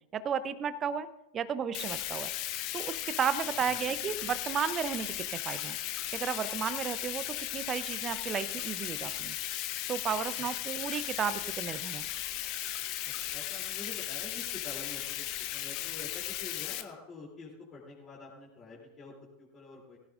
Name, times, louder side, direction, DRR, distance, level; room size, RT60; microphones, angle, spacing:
voice 1, 0.1-1.1 1.3-2.3 2.7-5.1 5.4-5.8 6.1-9.3 9.9-12.1, right 7 dB, 25° right, 14 dB, 0.7 m, -33 dB
Bathtub (filling or washing), 1.7-16.8, left 14 dB, 40° left, 1.0 m, -36 dB
voice 2, 3.6-4.1 10.4-10.5 10.7-10.8 13.3-20.0, left 3 dB, 25° left, -5 dB, 3.2 m, -48 dB
19.0 x 16.0 x 2.6 m, 0.92 s
figure-of-eight pair, 90°, 0 cm